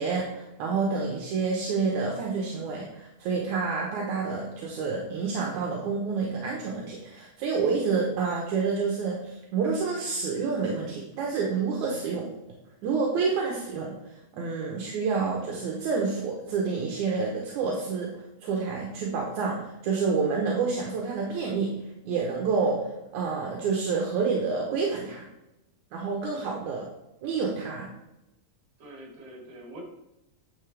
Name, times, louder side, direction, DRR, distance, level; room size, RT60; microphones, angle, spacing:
voice 1, 0.0-12.3 12.8-14.0 14.3-18.1 18.4-21.7 22.1-25.2 25.9-26.8 27.2-27.9, right 4 dB, 75° right, -1 dB, 2.5 m, -28 dB
voice 2, 28.8-29.8, right 1 dB, 55° right, -1 dB, 3.5 m, -45 dB
9.8 x 6.7 x 3.4 m, 0.92 s
omnidirectional pair, 3.5 m